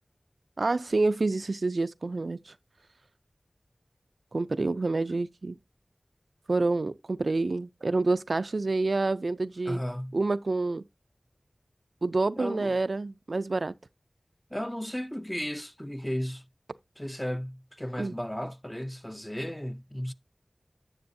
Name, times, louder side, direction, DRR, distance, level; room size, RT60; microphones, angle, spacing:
voice 1, 0.6-2.5 4.3-5.6 6.5-9.8 10.1-10.8 12.0-13.7 18.0-18.2, right 3 dB, 75° right, 0.3 m, -28 dB
voice 2, 9.7-10.2 12.4-12.8 14.5-16.4 17.0-20.1, equal, 10° left, 0.5 m, -34 dB
9.5 x 7.3 x 2.6 m
wide cardioid pair, 55°, 0 cm